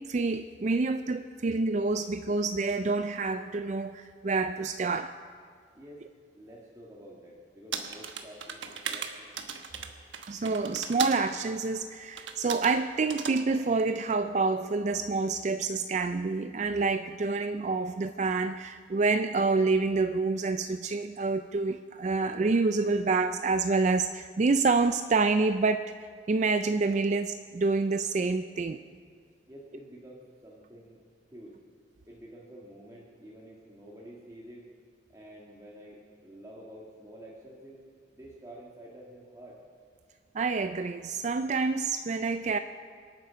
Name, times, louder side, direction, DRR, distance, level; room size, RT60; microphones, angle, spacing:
voice 1, 0.0-5.1 10.3-28.8 40.3-42.6, right 3 dB, 40° right, 9 dB, 0.4 m, -27 dB
voice 2, 6.3-9.3 29.5-31.0 31.3-31.6 32.1-34.7 35.1-37.8 38.1-39.6, right 1 dB, 20° right, -5 dB, 1.7 m, -49 dB
sound 1, 7.7-11.2 12.2-12.7 13.1-13.4, right 6 dB, 85° right, 1.2 m, -37 dB
26.0 x 9.1 x 5.7 m, 2.1 s
head